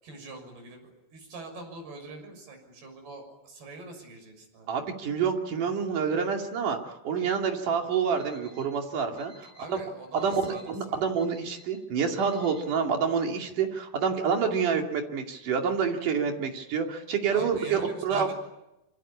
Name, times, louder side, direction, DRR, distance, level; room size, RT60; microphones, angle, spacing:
voice 1, 0.0-4.7 9.6-11.1 17.3-18.3, right 3 dB, 70° right, 5 dB, 8.6 m, -43 dB
voice 2, 4.7-9.8 10.2-18.3, right 6 dB, 55° right, 3 dB, 3.9 m, -28 dB
Alarm, 8.2-8.6 9.2-9.6 10.2-10.6 11.2-11.6 12.2-12.6, left 2 dB, 45° left, 8.4 m, -54 dB
26.5 x 25.0 x 8.7 m, 0.93 s
omnidirectional pair, 4.7 m